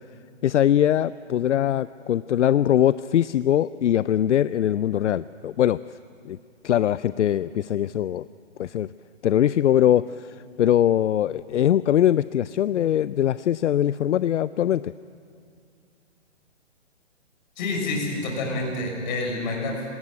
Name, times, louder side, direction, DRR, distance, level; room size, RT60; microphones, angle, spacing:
voice 1, 0.4-5.8 6.3-6.4 6.6-8.2 8.6-8.9 9.2-10.3 10.6-14.9, left 11 dB, 75° left, 17 dB, 0.5 m, -21 dB
voice 2, 17.6-19.8, left 2 dB, 40° left, 0 dB, 6.0 m, -28 dB
19.0 x 18.5 x 9.6 m, 2.3 s
hypercardioid pair, 150°, 36 cm